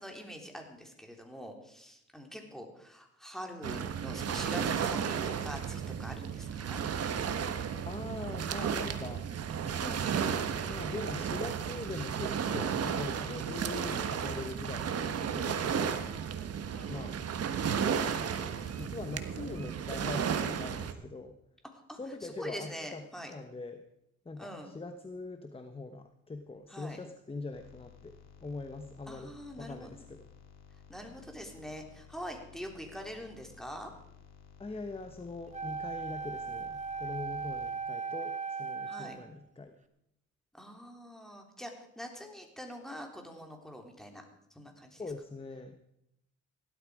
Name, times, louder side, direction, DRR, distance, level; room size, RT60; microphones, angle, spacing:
voice 1, 0.0-6.8 14.2-14.5 16.7-17.1 21.7-23.3 24.4-24.7 26.7-27.0 29.1-30.0 30.9-33.9 38.9-39.1 40.5-44.2 44.5-45.0, equal, ahead, 3 dB, 3.4 m, -44 dB
Waves surf, 3.6-20.9, right 7 dB, 55° right, 1.3 m, -33 dB
voice 2, 7.8-9.3 9.6-16.1 16.9-17.2 17.7-21.3 21.9-23.0 23.3-23.8 24.2-30.3 34.6-39.8 45.0-45.8, left 3 dB, 20° left, 8 dB, 1.1 m, -42 dB
sound 1, 27.5-37.7, left 7 dB, 60° left, 2.8 m, -56 dB
Wind instrument woodwind instrument, 35.5-39.3, right 5 dB, 25° right, 1.4 m, -37 dB
16.5 x 12.5 x 4.9 m, 0.79 s
cardioid pair, 90°, 30 cm